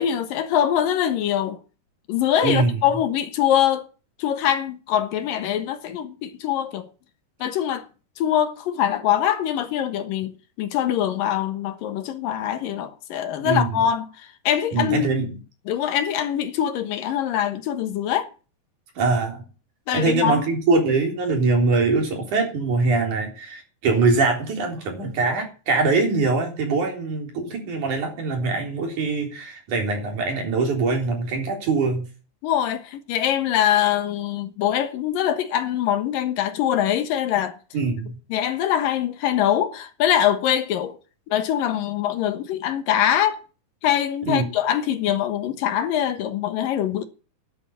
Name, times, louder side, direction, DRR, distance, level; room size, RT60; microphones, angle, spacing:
voice 1, 0.0-1.6 2.1-3.9 4.2-6.9 7.4-7.9 8.2-10.3 10.6-15.1 15.7-18.3 19.9-20.4 32.4-37.6 38.3-41.0 41.3-43.4 43.8-47.0, left 10 dB, 80° left, 3.0 m, -23 dB
voice 2, 2.4-2.8 13.4-13.8 14.7-15.3 19.0-19.4 19.9-32.0 37.7-38.1 44.2-44.5, right 3 dB, 60° right, 5.1 m, -23 dB
11.0 x 7.9 x 9.9 m
omnidirectional pair, 4.0 m